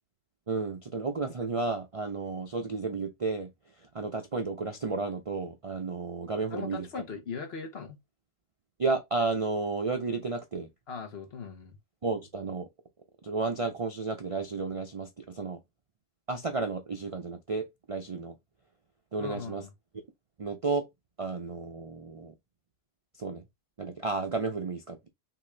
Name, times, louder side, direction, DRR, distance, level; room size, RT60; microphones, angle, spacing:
voice 1, 0.5-3.5 3.8-6.9 8.8-10.7 12.0-12.7 13.2-15.6 16.3-18.3 19.1-19.6 20.4-20.8 21.2-22.3 23.2-23.4 23.8-25.1, right 4 dB, 60° right, 0.3 m, -32 dB
voice 2, 6.5-8.0 10.9-11.8 19.2-19.7, left 5 dB, 50° left, 1.1 m, -39 dB
5.7 x 2.5 x 3.2 m
omnidirectional pair, 1.5 m